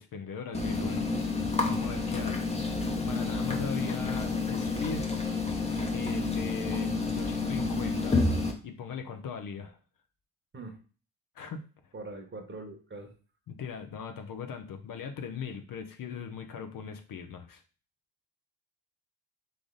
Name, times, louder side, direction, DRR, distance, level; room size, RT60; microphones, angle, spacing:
voice 1, 0.0-2.4 3.1-5.1 5.9-8.2 8.6-9.8 11.3-11.7 13.5-17.6, left 6 dB, 55° left, 0.7 m, -39 dB
sound 1, 0.5-8.5, left 3 dB, 15° left, 0.9 m, -29 dB
voice 2, 11.9-13.1, right 2 dB, 25° right, 1.2 m, -42 dB
3.7 x 3.4 x 3.8 m
supercardioid pair, 80°, 41 cm